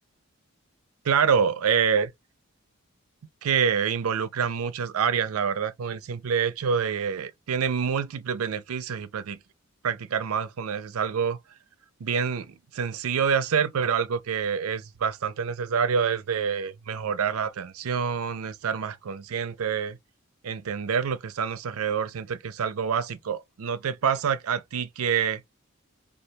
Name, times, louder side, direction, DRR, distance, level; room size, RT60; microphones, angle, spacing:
voice 1, 1.0-2.1 3.4-9.4 9.8-11.4 12.0-20.0 20.4-25.4, right 6 dB, 85° right, 0.5 m, -27 dB
2.8 x 2.3 x 3.2 m
head